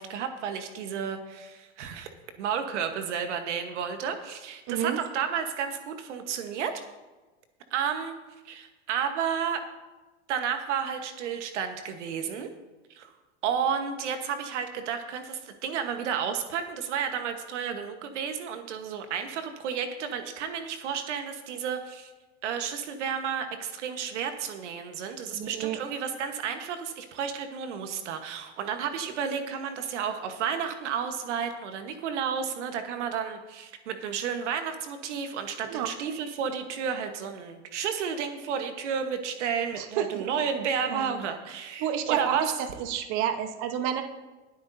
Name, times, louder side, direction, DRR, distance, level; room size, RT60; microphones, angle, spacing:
voice 1, 0.0-2.1 2.4-6.7 7.7-8.1 8.4-9.6 10.3-12.5 12.9-13.1 13.4-22.1 22.4-42.5, right 7 dB, 80° right, 7 dB, 1.3 m, -32 dB
voice 2, 4.7-5.0 25.3-25.8 35.6-35.9 39.8-40.3 40.9-41.2 41.8-44.0, right 9 dB, 55° right, 7 dB, 1.2 m, -30 dB
22.0 x 8.1 x 2.7 m, 1.2 s
hypercardioid pair, 110°, 35 cm